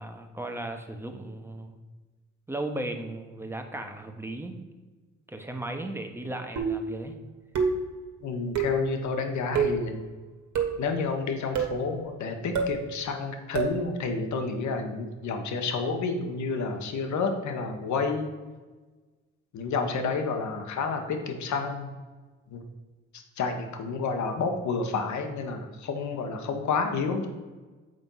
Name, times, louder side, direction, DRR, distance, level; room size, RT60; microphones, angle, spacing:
voice 1, 0.0-1.8 2.5-4.6 5.3-7.2, right 1 dB, 10° right, 4 dB, 1.1 m, -36 dB
sound 1, 6.6-7.0 7.5-7.9 8.5-8.9 9.5-9.9 10.6-10.9 11.5-11.8 12.5-12.8 13.5-13.8, right 4 dB, 70° right, 1.6 m, -27 dB
voice 2, 8.2-10.0 10.8-18.3 19.5-21.9 22.5-22.6 23.4-27.3, left 4 dB, 70° left, 5 dB, 1.2 m, -30 dB
7.9 x 4.4 x 5.5 m, 1.3 s
cardioid pair, 90°, 30 cm